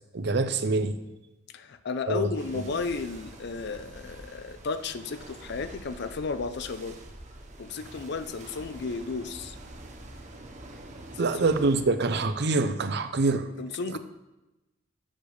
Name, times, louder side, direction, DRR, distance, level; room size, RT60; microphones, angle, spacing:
voice 1, 0.1-1.0 2.1-2.3 11.2-13.5, right 3 dB, 60° right, 10 dB, 0.6 m, -25 dB
voice 2, 1.5-7.0 7.6-9.6 11.2-11.5 13.6-14.0, left 4 dB, 60° left, 11 dB, 0.5 m, -33 dB
sound 1, 2.3-11.8, right 1 dB, 40° right, 1.0 m, -46 dB
7.3 x 5.0 x 6.4 m, 1.0 s
head